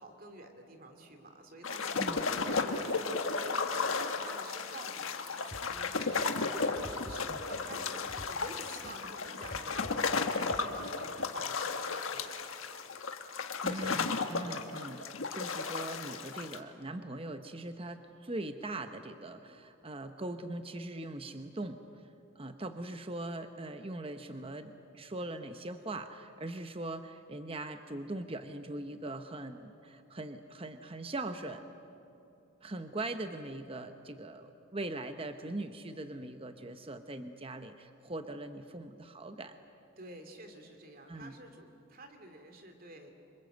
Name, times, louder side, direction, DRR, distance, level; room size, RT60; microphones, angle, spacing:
voice 1, 0.0-12.3 40.0-43.1, right 1 dB, 45° right, 6 dB, 2.6 m, -49 dB
sound 1, 1.6-16.6, left 4 dB, 80° left, 1.5 m, -34 dB
sound 2, 5.5-5.9 6.2-8.5 8.8-10.6, left 1 dB, 30° left, 2.2 m, -47 dB
voice 2, 13.6-15.0 15.3-21.8 22.4-31.6 32.6-39.6 41.1-41.3, right 2 dB, 25° right, 8 dB, 0.9 m, -41 dB
27.0 x 25.5 x 7.9 m, 2.7 s
head